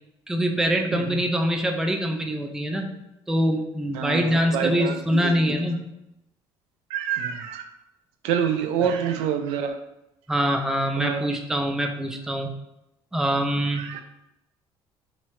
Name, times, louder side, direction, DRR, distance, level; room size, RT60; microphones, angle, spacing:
voice 1, 0.3-3.0 3.3-5.9 8.8-8.9 10.3-12.5 13.1-13.8, equal, 5° right, 3 dB, 0.4 m, -24 dB
voice 2, 3.9-5.6 6.9-7.6 8.2-9.7 11.0-11.2 13.8-14.0, right 8 dB, 90° right, 6 dB, 0.4 m, -27 dB
3.6 x 3.0 x 3.1 m, 0.87 s
cardioid pair, 125°, 10 cm